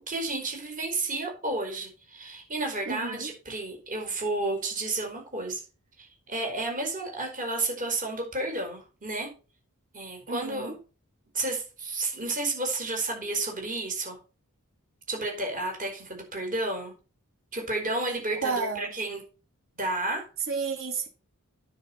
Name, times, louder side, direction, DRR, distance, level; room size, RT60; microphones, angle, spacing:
voice 1, 0.0-5.6 6.0-9.3 9.9-10.8 11.3-14.2 15.1-16.9 17.5-19.2 19.8-20.3, right 2 dB, 40° right, 2 dB, 4.9 m, -31 dB
voice 2, 2.8-3.3 10.3-10.8 18.4-18.9 20.5-21.1, right 4 dB, 65° right, 3 dB, 3.4 m, -31 dB
9.7 x 6.5 x 5.7 m, 0.34 s
head